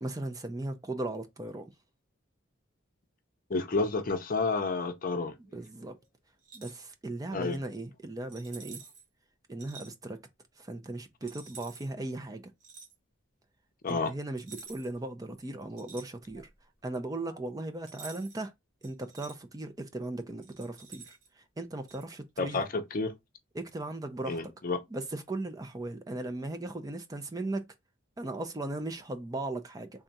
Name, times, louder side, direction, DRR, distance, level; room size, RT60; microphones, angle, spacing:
voice 1, 0.0-1.7 5.5-5.9 6.5-8.8 9.5-10.2 10.6-12.5 13.9-16.5 16.8-18.5 18.8-22.6 23.5-24.4 24.9-27.7 28.2-30.0, right 2 dB, 20° right, 0.4 m, -37 dB
voice 2, 3.5-5.3 7.3-7.6 13.8-14.1 22.4-23.1 24.3-24.8, left 3 dB, 45° left, 0.6 m, -30 dB
sound 1, 6.4-6.8 8.3-9.0 9.6-9.9 11.3-11.9 12.6-12.9 14.4-15.0 15.3-16.5 17.9-18.4 18.8-19.4 20.4-21.3 21.9-22.0, right 4 dB, 70° right, 1.4 m, -49 dB
3.6 x 2.3 x 4.0 m
head